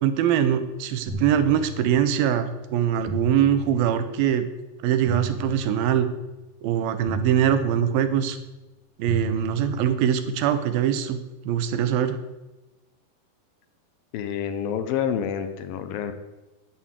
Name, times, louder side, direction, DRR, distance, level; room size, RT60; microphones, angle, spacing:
voice 1, 0.0-4.5 4.8-6.1 6.6-8.4 9.0-11.2 11.4-12.2, right 9 dB, 75° right, 10 dB, 2.7 m, -22 dB
sound 1, 1.1-2.2 3.1-4.2 5.1-6.2 7.1-8.2 9.1-10.2, left 1 dB, 40° right, 2.5 m, -35 dB
voice 2, 14.1-16.1, left 8 dB, 75° left, 10 dB, 2.6 m, -28 dB
10.0 x 8.9 x 8.2 m, 1.1 s
omnidirectional pair, 4.4 m